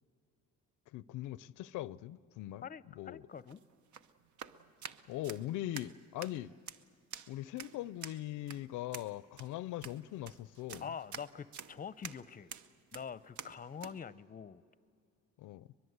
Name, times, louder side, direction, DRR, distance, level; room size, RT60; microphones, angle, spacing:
voice 1, 0.9-2.6 3.0-3.2 5.1-6.5 7.3-10.8 15.4-15.7, left 14 dB, 80° left, 0.5 m, -41 dB
voice 2, 2.6-3.6 10.8-12.5 12.9-14.6, left 7 dB, 30° left, 0.6 m, -45 dB
sound 1, 3.3-14.0, right 7 dB, 70° right, 0.8 m, -49 dB
22.5 x 22.0 x 8.0 m
cardioid pair, 90°, 30 cm